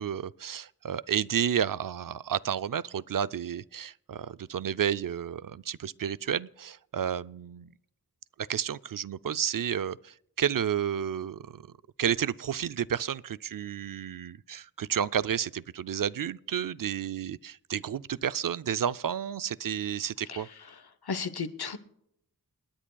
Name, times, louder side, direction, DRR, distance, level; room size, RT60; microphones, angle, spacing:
voice 1, 0.0-7.7 8.4-11.7 12.0-20.5, right 8 dB, 60° right, 0.5 m, -31 dB
voice 2, 20.3-21.8, left 5 dB, 75° left, 1.0 m, -36 dB
29.5 x 10.0 x 2.3 m
wide cardioid pair, 70°, 39 cm